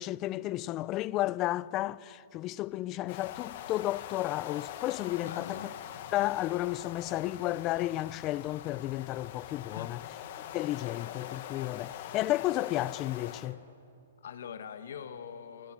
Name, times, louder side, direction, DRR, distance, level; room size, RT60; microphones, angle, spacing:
voice 1, 0.0-5.7 6.1-10.0 10.5-13.6, left 16 dB, 30° left, 0.5 m, -32 dB
sound 1, 3.1-13.5, left 11 dB, 50° left, 1.7 m, -43 dB
voice 2, 5.2-5.8 9.6-10.0 14.2-15.7, left 7 dB, 75° left, 1.8 m, -43 dB
28.5 x 25.5 x 6.3 m
hypercardioid pair, 145°, 0 cm